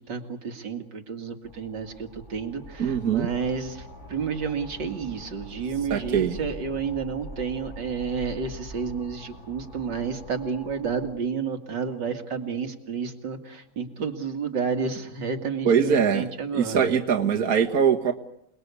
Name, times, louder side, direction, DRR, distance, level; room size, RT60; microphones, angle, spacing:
voice 1, 0.0-3.8 4.1-16.9, right 5 dB, 85° right, 5 dB, 2.8 m, -31 dB
sound 1, 1.4-11.1, right 1 dB, 40° left, 8.5 m, -43 dB
voice 2, 2.8-3.3 5.9-6.4 15.6-16.3 16.5-18.1, right 7 dB, 60° right, 2 dB, 2.0 m, -22 dB
28.0 x 20.5 x 8.3 m, 0.74 s
omnidirectional pair, 1.9 m